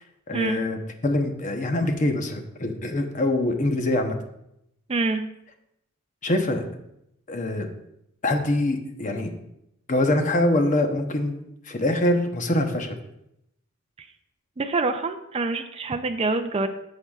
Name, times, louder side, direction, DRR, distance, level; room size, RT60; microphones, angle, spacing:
voice 1, 0.3-4.1 6.2-6.6 7.3-7.7 8.2-9.3 9.9-11.4 11.7-13.0, left 1 dB, 35° left, 5 dB, 0.9 m, -24 dB
voice 2, 4.9-5.2 14.0-14.1 14.6-16.7, right 3 dB, 30° right, 6 dB, 0.4 m, -26 dB
11.5 x 6.8 x 2.4 m, 0.80 s
head